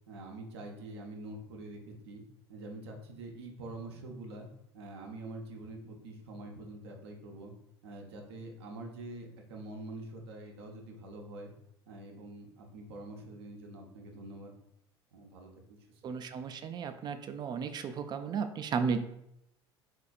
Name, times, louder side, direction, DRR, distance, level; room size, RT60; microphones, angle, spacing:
voice 1, 0.1-2.2 2.5-4.5 4.7-7.5 7.8-11.5 11.9-14.5 15.1-16.0, right 2 dB, 65° right, 2 dB, 0.8 m, -45 dB
voice 2, 16.0-19.0, right 6 dB, 30° right, 9 dB, 0.4 m, -34 dB
4.1 x 4.0 x 2.4 m, 0.79 s
figure-of-eight pair, 65°, 14 cm